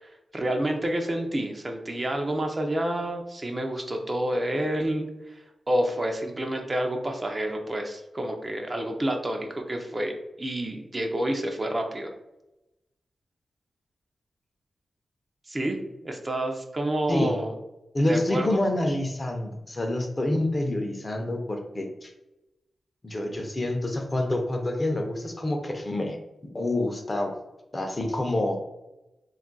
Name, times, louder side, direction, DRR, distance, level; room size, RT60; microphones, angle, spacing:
voice 1, 0.0-5.3 5.7-12.1 15.5-15.8 16.0-17.5 18.1-18.6, right 1 dB, 35° right, 3 dB, 0.4 m, -29 dB
voice 2, 17.1-17.4 17.9-22.1 23.0-26.2 26.5-27.3 27.7-28.6, left 1 dB, 35° left, 4 dB, 0.5 m, -27 dB
2.3 x 2.1 x 3.8 m, 0.96 s
cardioid pair, 55°, 0 cm